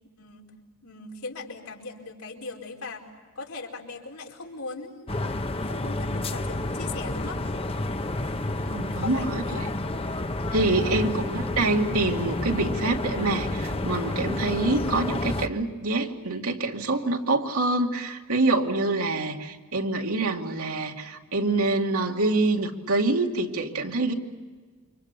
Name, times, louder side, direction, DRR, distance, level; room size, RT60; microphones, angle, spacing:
voice 1, 0.2-0.5 0.8-3.1 3.3-5.3 5.6-7.4 9.0-9.7 10.8-11.2, left 3 dB, 80° left, 0 dB, 4.7 m, -39 dB
sound 1, 5.1-15.5, left 2 dB, 25° left, 1.0 m, -30 dB
voice 2, 8.7-9.7 10.5-24.1, right 2 dB, 80° right, 2 dB, 2.5 m, -26 dB
29.0 x 26.0 x 6.8 m, 1.4 s
head